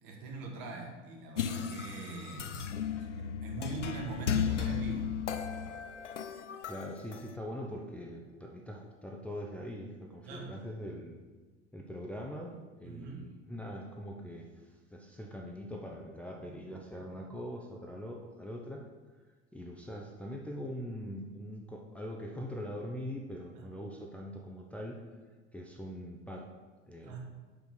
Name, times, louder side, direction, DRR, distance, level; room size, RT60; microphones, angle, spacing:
voice 1, 0.0-2.7 3.2-5.1 10.2-10.5 12.8-13.2 23.5-23.7 27.0-27.2, right 3 dB, 50° right, 0 dB, 1.9 m, -42 dB
sound 1, 1.4-7.3, left 8 dB, 85° left, 0.5 m, -35 dB
voice 2, 6.7-11.2 11.7-18.9 19.5-25.0 25.5-26.5 26.9-27.2, equal, 5° left, -1 dB, 0.7 m, -42 dB
5.8 x 5.5 x 6.4 m, 1.3 s
figure-of-eight pair, 75°, 36 cm